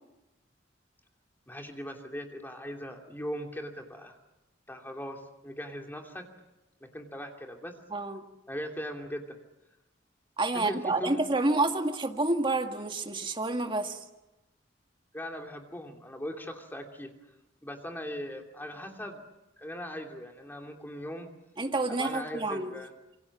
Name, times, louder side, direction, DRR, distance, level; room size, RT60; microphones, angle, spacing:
voice 1, 1.5-4.2 4.7-6.2 6.9-7.7 8.5-9.4 10.5-11.3 15.1-17.1 17.6-19.2 19.6-21.3 21.9-22.9, equal, 10° left, 2 dB, 2.8 m, -39 dB
voice 2, 7.9-8.2 10.4-14.0 21.6-22.7, right 2 dB, 25° right, 4 dB, 1.9 m, -29 dB
27.0 x 24.0 x 7.3 m, 0.98 s
head